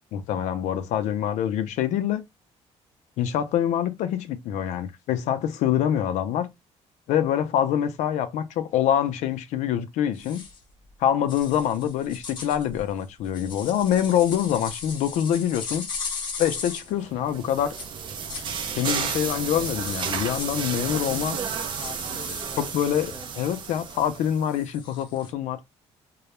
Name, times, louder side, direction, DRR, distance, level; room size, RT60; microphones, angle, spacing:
voice 1, 0.1-2.2 3.2-6.5 7.1-10.4 11.0-15.9 16.4-17.7 18.8-21.4 22.6-25.6, left 10 dB, 85° left, 0.4 m, -25 dB
sound 1, 10.2-10.6 11.3-16.9 17.8-18.5 18.8-20.6 21.0-21.3 21.8-22.5 24.4-25.3, left 5 dB, 40° left, 0.8 m, -38 dB
sound 2, 17.0-24.5, right 6 dB, 45° right, 0.4 m, -32 dB
voice 2, 20.3-23.3, left 3 dB, 20° left, 0.5 m, -44 dB
2.3 x 2.0 x 2.9 m
cardioid pair, 155°, 12 cm